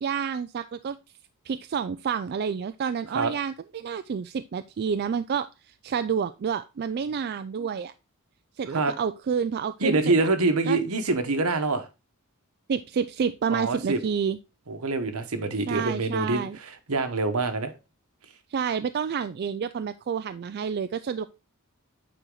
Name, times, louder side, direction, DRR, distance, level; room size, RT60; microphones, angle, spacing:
voice 1, 0.0-1.0 1.5-7.9 8.6-10.3 10.7-10.8 12.7-14.4 15.7-16.6 18.5-21.3, right 6 dB, 45° right, 10 dB, 0.3 m, -29 dB
voice 2, 9.8-11.9 13.5-14.0 14.7-16.4 16.9-17.7, right 3 dB, 75° right, 8 dB, 1.2 m, -25 dB
9.0 x 4.6 x 3.8 m, 0.27 s
head